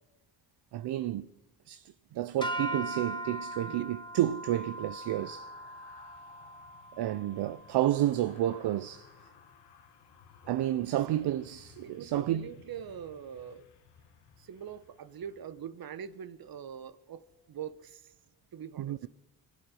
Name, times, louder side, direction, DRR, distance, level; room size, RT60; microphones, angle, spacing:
voice 1, 0.7-1.3 1.7-5.5 7.0-9.1 10.5-12.5 18.8-19.1, right 13 dB, 75° right, 0.6 m, -30 dB
sound 1, 2.4-8.8, right 1 dB, 10° left, 2.1 m, -40 dB
sound 2, 2.9-16.1 16.5-16.7, left 8 dB, 90° left, 1.3 m, -59 dB
voice 2, 10.4-10.8 11.8-13.7 14.4-18.1 18.5-19.0, right 8 dB, 60° right, 1.1 m, -43 dB
24.0 x 8.2 x 6.3 m
supercardioid pair, 55°, 40 cm